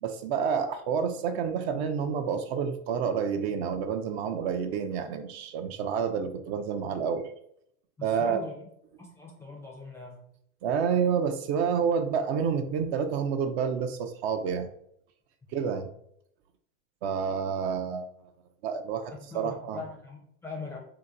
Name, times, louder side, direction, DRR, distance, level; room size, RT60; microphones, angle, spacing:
voice 1, 0.0-7.3 8.0-8.4 10.6-14.7 15.5-15.9 17.0-18.1 18.6-19.8, right 7 dB, 50° right, 7 dB, 0.5 m, -29 dB
voice 2, 8.0-8.6 9.0-10.3 19.2-20.8, left 3 dB, 5° left, -2 dB, 0.4 m, -41 dB
2.8 x 2.2 x 3.6 m, 0.69 s
supercardioid pair, 125°, 41 cm